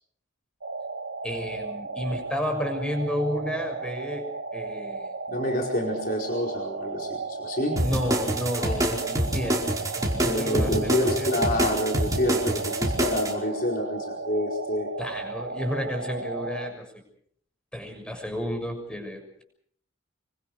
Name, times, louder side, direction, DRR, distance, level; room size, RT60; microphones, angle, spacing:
sound 1, 0.6-16.7, right 3 dB, 65° right, 1.6 m, -35 dB
voice 1, 1.2-5.1 7.8-9.7 9.9-11.3 15.0-16.9 17.7-19.4, equal, 5° left, 4 dB, 6.6 m, -31 dB
voice 2, 5.3-7.8 8.6-8.8 10.3-14.9, left 1 dB, 45° left, -1 dB, 4.7 m, -28 dB
sound 2, 7.8-13.3, right 1 dB, 15° right, 4.8 m, -26 dB
27.0 x 25.0 x 4.9 m, 0.65 s
head